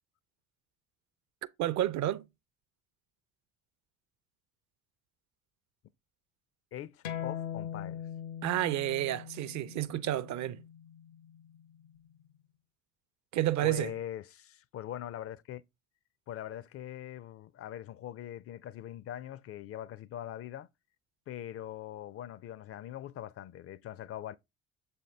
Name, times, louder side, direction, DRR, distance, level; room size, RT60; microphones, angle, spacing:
voice 1, 1.6-2.2 8.4-10.6 13.3-13.9, right 13 dB, 50° right, 0.6 m, -30 dB
voice 2, 6.7-8.0 13.6-15.6 16.3-20.7 21.3-24.4, left 11 dB, 40° left, 0.4 m, -42 dB
sound 1, 7.0-12.2, left 9 dB, 80° left, 0.9 m, -42 dB
7.1 x 4.3 x 3.3 m
hypercardioid pair, 55°, 38 cm